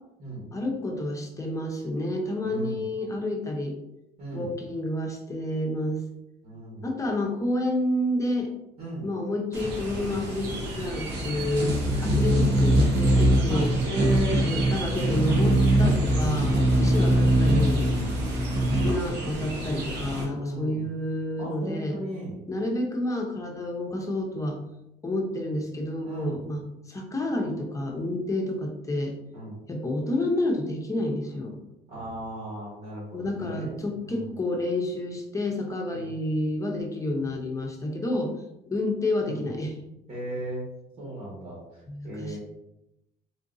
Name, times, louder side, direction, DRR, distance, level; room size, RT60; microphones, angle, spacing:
voice 1, 0.5-3.8 4.3-6.0 6.8-8.5 9.0-11.7 12.0-13.7 14.3-17.8 18.7-22.0 22.5-24.6 25.0-29.2 29.7-31.6 33.1-38.3 38.7-39.8 41.9-42.4, left 1 dB, 20° left, 1 dB, 0.6 m, -29 dB
voice 2, 2.4-2.9 4.2-4.5 6.4-6.9 8.8-9.0 11.4-12.2 13.5-14.4 16.2-17.2 18.0-18.3 19.2-19.7 20.1-20.9 21.4-22.4 26.0-26.4 29.3-29.6 31.9-33.8 34.0-34.3 35.9-36.0 39.2-39.4 40.1-40.7 41.0-42.4, right 1 dB, 60° right, -6 dB, 1.5 m, -36 dB
sound 1, 9.5-20.2, right 1 dB, 85° right, 0.9 m, -23 dB
3.8 x 2.5 x 2.6 m, 0.88 s
cardioid pair, 110°, 17 cm